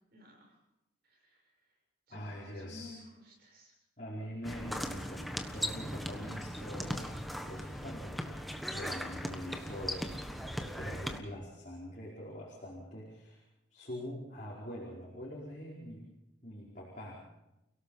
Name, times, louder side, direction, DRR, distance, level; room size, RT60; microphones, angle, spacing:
voice 1, 0.1-0.6 1.0-1.5 2.1-3.7, left 2 dB, 55° right, 0 dB, 7.4 m, -54 dB
voice 2, 2.1-2.9 4.0-8.4 8.7-10.0 10.8-13.4 13.7-16.0 16.4-17.3, equal, 40° left, -5 dB, 5.0 m, -44 dB
sound 1, 4.4-11.2, equal, ahead, 1.3 m, -38 dB
30.0 x 17.5 x 5.7 m, 0.91 s
head